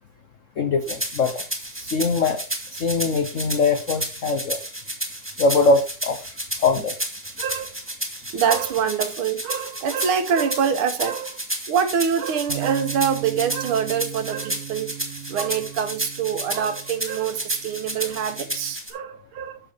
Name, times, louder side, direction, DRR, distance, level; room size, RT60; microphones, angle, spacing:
voice 1, 0.6-1.4 1.7-2.4 2.7-4.6 5.4-6.2 6.6-6.9, left 3 dB, 70° left, 0.7 m, -22 dB
sound 1, 0.9-18.9, right 1 dB, 5° right, 1.8 m, -32 dB
voice 2, 7.4-7.7 8.3-11.4 11.7-19.6, right 7 dB, 75° right, 1.8 m, -25 dB
sound 2, 12.5-18.7, right 12 dB, 55° right, 0.7 m, -37 dB
10.5 x 7.0 x 3.4 m
omnidirectional pair, 2.4 m